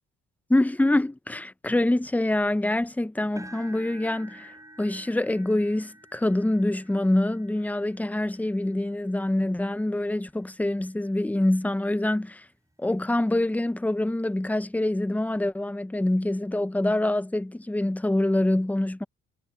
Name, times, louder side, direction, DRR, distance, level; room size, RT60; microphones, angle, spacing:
voice 1, 0.5-12.4 12.8-19.0, left 1 dB, 5° left, 0.7 m, -25 dB
sound 1, 3.4-11.4 12.0-12.3 12.7-12.8 14.2-14.3, right 1 dB, 10° right, 6.1 m, -51 dB
cardioid pair, 90°, 30 cm